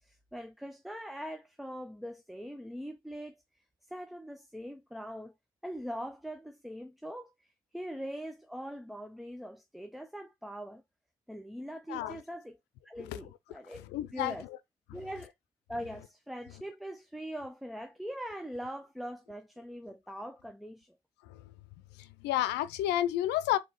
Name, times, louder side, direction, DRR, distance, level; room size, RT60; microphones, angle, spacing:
voice 1, 0.0-3.4 3.9-5.3 5.6-7.3 7.7-10.8 11.3-12.6 12.8-13.8 14.1-14.5 14.9-15.3 15.7-21.0, equal, ahead, 0.4 m, -42 dB
voice 2, 11.9-12.2 13.0-13.2 13.7-14.6 21.2-21.5 22.0-23.6, left 13 dB, 90° left, 0.6 m, -31 dB
3.9 x 2.9 x 4.2 m
cardioid pair, 110°, 17 cm